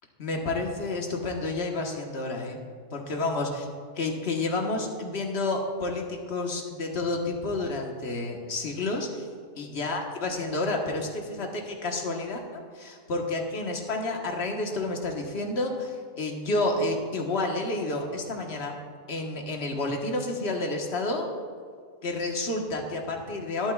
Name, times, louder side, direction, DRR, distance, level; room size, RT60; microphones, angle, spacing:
voice 1, 0.2-2.6 2.9-3.6 3.9-9.2 9.5-12.4 12.7-18.8 19.1-21.3 22.0-23.7, left 2 dB, 50° left, 1 dB, 1.5 m, -30 dB
19.5 x 9.3 x 2.4 m, 2.1 s
omnidirectional pair, 1.5 m